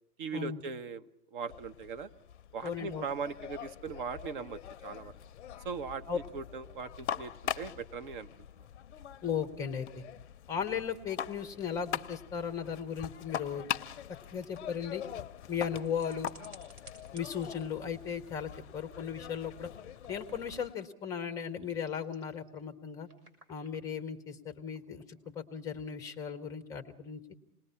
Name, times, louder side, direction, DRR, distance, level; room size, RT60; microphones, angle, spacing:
voice 1, 0.2-1.0 1.3-2.1 2.5-5.1 5.6-8.3, right 5 dB, 35° right, 11 dB, 0.9 m, -39 dB
sound 1, 1.5-20.7, left 9 dB, 45° left, 0.7 m, -43 dB
voice 2, 2.6-3.1 6.1-6.2 9.2-10.0 10.5-13.7 14.3-15.0 15.5-16.3 17.1-19.7 20.1-23.1 23.5-27.2, left 7 dB, 5° left, 7 dB, 0.8 m, -36 dB
sound 2, 13.3-17.7 18.0-18.6 18.9-19.0 19.3-20.8 21.1-22.6 23.0-23.8 24.3-26.3, right 2 dB, 75° right, 7.0 m, -59 dB
27.5 x 20.0 x 5.7 m, 0.80 s
hypercardioid pair, 140°, 46 cm